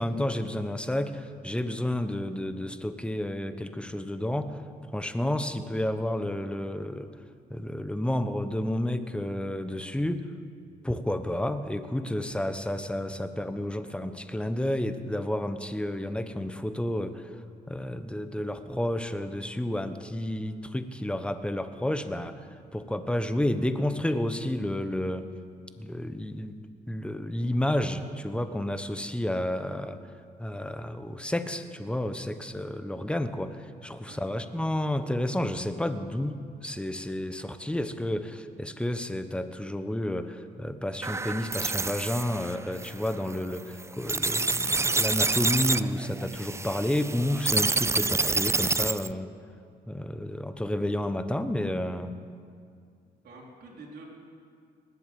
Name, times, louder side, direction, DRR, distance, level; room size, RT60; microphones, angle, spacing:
voice 1, 0.0-4.6 4.9-7.1 7.5-10.3 10.8-17.4 17.7-25.3 25.8-26.6 26.9-30.0 30.4-49.3 49.9-52.1, left 1 dB, 5° left, 10 dB, 1.0 m, -31 dB
voice 2, 34.1-34.4 53.0-54.0, right 3 dB, 65° right, -3 dB, 4.0 m, -48 dB
sound 1, 41.0-49.1, right 3 dB, 15° right, 0.4 m, -28 dB
20.0 x 8.2 x 7.6 m, 2.2 s
cardioid pair, 75°, 17 cm